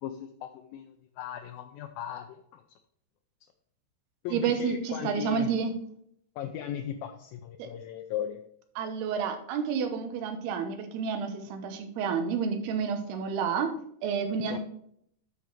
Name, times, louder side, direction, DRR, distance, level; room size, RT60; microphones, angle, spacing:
voice 1, 0.0-2.3 2.5-2.6 4.2-5.5 6.4-8.4 14.5-14.6, left 10 dB, 85° left, 6 dB, 2.1 m, -37 dB
voice 2, 4.3-5.7 7.6-7.7 8.8-13.7 14.0-14.6, right 6 dB, 75° right, 7 dB, 3.0 m, -30 dB
10.5 x 5.1 x 4.6 m, 0.68 s
omnidirectional pair, 4.8 m